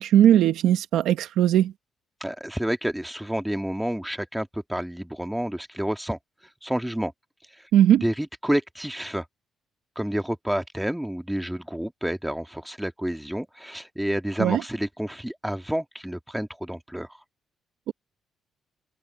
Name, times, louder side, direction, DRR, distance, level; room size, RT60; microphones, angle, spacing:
voice 1, 0.0-1.7 7.7-8.0 14.4-14.6, right 11 dB, 80° right, 1.4 m, -19 dB
voice 2, 2.2-6.2 6.6-7.1 7.6-7.7 8.0-9.2 10.0-17.2, equal, 5° right, 2.0 m, -29 dB
cardioid pair, 90°, 0 cm